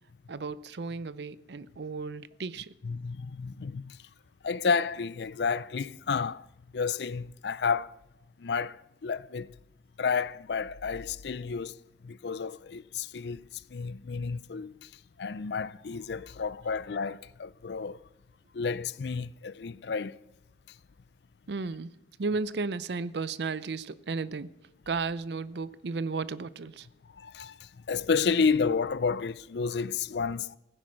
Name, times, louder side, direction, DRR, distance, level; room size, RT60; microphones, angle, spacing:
voice 1, 0.3-2.7 21.5-21.9 22.2-24.5 24.9-26.9, right 4 dB, 70° right, 0.5 m, -34 dB
voice 2, 2.8-4.0 4.4-6.5 6.7-8.0 8.4-9.5 10.0-11.8 12.0-14.9 15.2-18.0 18.5-20.2 27.2-30.6, left 5 dB, 70° left, 0.5 m, -31 dB
16.5 x 10.0 x 6.3 m
head